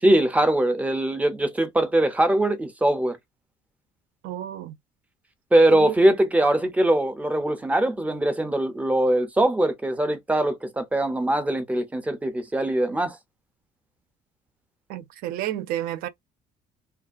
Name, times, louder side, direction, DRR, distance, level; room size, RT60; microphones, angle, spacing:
voice 1, 0.0-3.2 5.5-13.2, right 1 dB, 10° right, 0.4 m, -22 dB
voice 2, 4.2-4.8 5.7-5.9 14.9-16.1, right 12 dB, 65° right, 0.4 m, -31 dB
2.3 x 2.3 x 2.4 m
cardioid pair, 155°, 16 cm